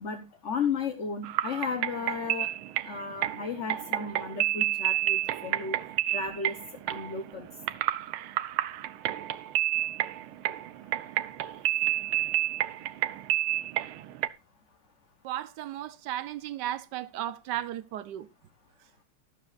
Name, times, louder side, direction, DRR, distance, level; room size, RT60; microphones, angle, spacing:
voice 1, 0.0-2.5 2.9-5.8 6.1-6.6 6.9-7.5, left 5 dB, 45° left, 1.1 m, -34 dB
sound 1, 1.2-14.3, right 14 dB, 80° right, 1.5 m, -30 dB
voice 2, 15.2-18.3, right 13 dB, 65° right, 1.2 m, -35 dB
12.5 x 11.5 x 2.4 m
omnidirectional pair, 2.3 m